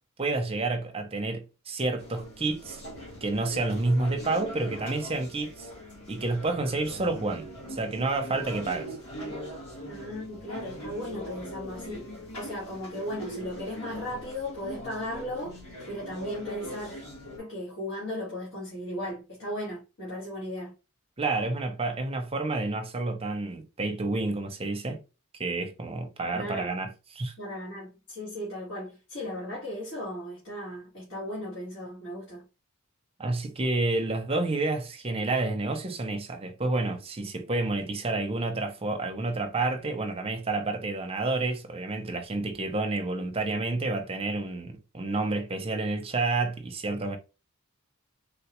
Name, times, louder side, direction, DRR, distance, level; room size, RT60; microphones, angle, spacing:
voice 1, 0.2-2.8 3.2-5.7 6.1-8.9 21.2-25.0 25.4-27.3 33.2-47.2, right 2 dB, 25° right, 0.6 m, -29 dB
sound 1, 2.0-17.4, equal, 85° left, 1.6 m, -41 dB
voice 2, 9.9-16.9 17.4-20.7 26.3-26.7 27.4-32.4, left 1 dB, 60° left, 1.5 m, -36 dB
3.6 x 2.3 x 2.9 m
head